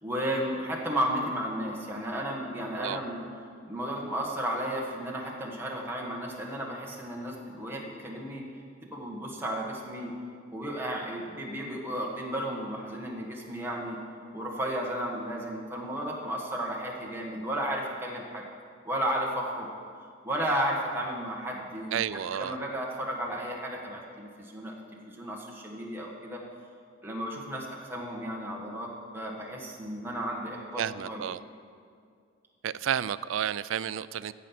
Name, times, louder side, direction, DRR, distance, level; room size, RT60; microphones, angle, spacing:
voice 1, 0.0-3.3 3.6-8.4 8.9-10.1 10.5-14.0 14.3-18.4 18.8-19.7 20.2-22.1 22.3-26.4 27.0-28.9 29.1-31.3, equal, 10° right, -2 dB, 1.6 m, -33 dB
voice 2, 21.9-22.6 30.7-31.4 32.6-34.3, right 9 dB, 80° right, 17 dB, 0.4 m, -31 dB
16.0 x 7.3 x 5.9 m, 2.2 s
head